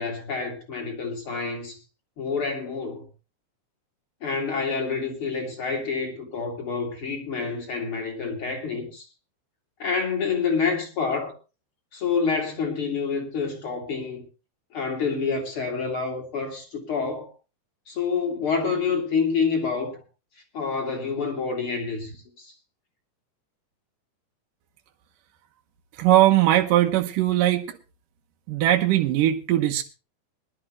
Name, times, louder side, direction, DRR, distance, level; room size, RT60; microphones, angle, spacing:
voice 1, 0.0-1.8 2.2-3.0 4.2-9.1 9.8-11.3 11.9-14.2 14.7-17.3 17.9-20.0 20.5-22.5, left 5 dB, 35° left, 3.7 m, -28 dB
voice 2, 26.0-27.8 28.5-29.8, right 14 dB, 70° right, 2.4 m, -20 dB
21.0 x 12.0 x 3.1 m
omnidirectional pair, 4.5 m